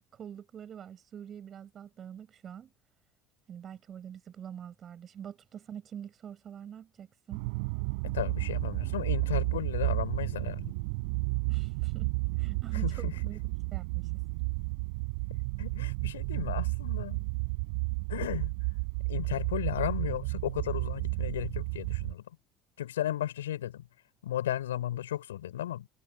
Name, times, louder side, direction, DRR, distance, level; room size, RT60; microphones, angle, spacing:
voice 1, 0.1-2.7 3.5-7.5 11.5-13.4 13.7-14.1, right 9 dB, 45° right, 6.8 m, -45 dB
sound 1, 7.3-22.1, right 30 dB, 75° right, 6.7 m, -32 dB
voice 2, 8.0-10.7 12.8-13.1 15.3-17.2 18.1-18.5 19.1-22.3 22.8-23.9 24.2-25.9, left 12 dB, 90° left, 7.3 m, -35 dB
hypercardioid pair, 70°, 0 cm